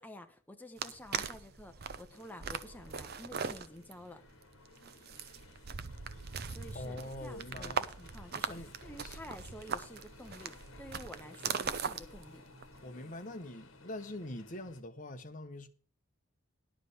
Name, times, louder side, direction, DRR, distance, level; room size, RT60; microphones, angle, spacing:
voice 1, 0.0-4.2 6.5-12.4, left 1 dB, 10° left, 1.1 m, -50 dB
sound 1, 0.8-12.9, right 6 dB, 50° right, 0.7 m, -40 dB
sound 2, 2.1-14.8, left 3 dB, 70° left, 1.4 m, -58 dB
voice 2, 6.7-7.8 8.5-8.7 9.0-9.2 12.8-15.7, left 1 dB, 40° left, 1.1 m, -43 dB
11.5 x 5.1 x 8.0 m
head